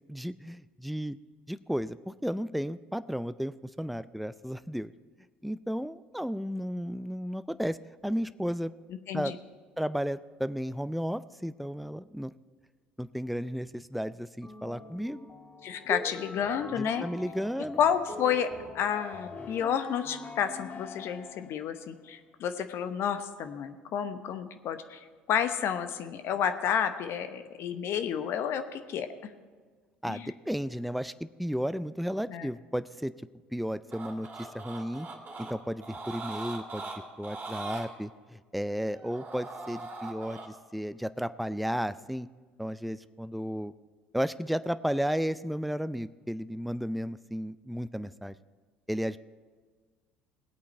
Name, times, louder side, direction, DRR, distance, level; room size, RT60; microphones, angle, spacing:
voice 1, 0.1-1.2 1.5-4.9 5.4-7.8 8.0-8.7 9.1-9.3 9.8-12.3 13.0-15.3 15.9-16.1 16.8-17.8 30.0-31.1 31.4-33.1 33.5-35.1 35.4-36.9 37.2-42.3 42.6-43.7 44.1-48.3 48.9-49.2, equal, ahead, 14 dB, 0.4 m, -33 dB
sound 1, 14.4-21.7, left 4 dB, 40° left, 1.4 m, -44 dB
voice 2, 15.6-17.1 17.8-29.3 30.1-30.3 32.3-32.5, left 8 dB, 55° left, 9 dB, 0.9 m, -31 dB
sound 2, 33.9-35.5 35.8-37.9 38.7-40.5, right 3 dB, 35° right, 2.4 m, -41 dB
18.5 x 8.5 x 4.4 m, 1.5 s
hypercardioid pair, 65°, 5 cm